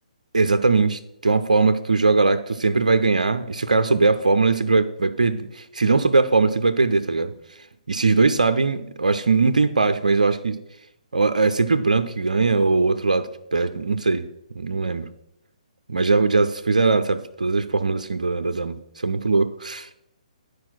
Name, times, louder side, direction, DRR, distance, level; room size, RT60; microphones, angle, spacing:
voice 1, 0.3-7.3 7.9-10.6 11.1-14.3 14.6-15.1 15.9-19.9, right 3 dB, 80° right, 10 dB, 0.6 m, -20 dB
11.0 x 4.8 x 6.1 m, 0.81 s
figure-of-eight pair, 135°, 4 cm